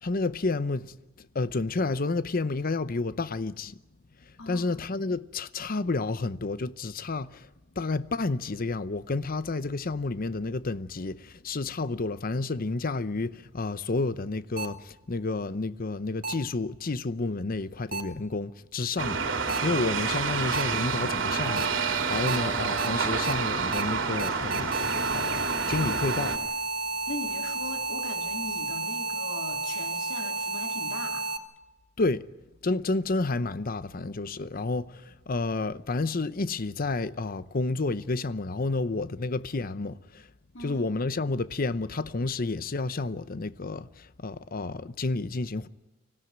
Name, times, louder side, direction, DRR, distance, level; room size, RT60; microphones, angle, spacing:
voice 1, 0.0-0.9 1.3-3.8 4.5-7.5 7.8-19.3 19.6-24.8 25.1-26.4 32.0-32.3 32.6-40.3 40.6-45.7, left 3 dB, 50° left, 0.7 m, -30 dB
voice 2, 4.4-4.7 27.1-31.2 40.5-40.9, left 2 dB, 75° left, 3.1 m, -40 dB
sound 1, 14.6-14.7 16.2-16.3 17.9-18.0 19.5-19.6 20.5-20.6 21.6-21.7 22.3-22.4 22.8-22.9 23.2-23.3 23.7-23.8 24.2-31.4, right 2 dB, 50° right, 2.0 m, -31 dB
sound 2, 19.0-26.4, right 5 dB, 75° right, 3.0 m, -28 dB
25.0 x 16.5 x 9.4 m
head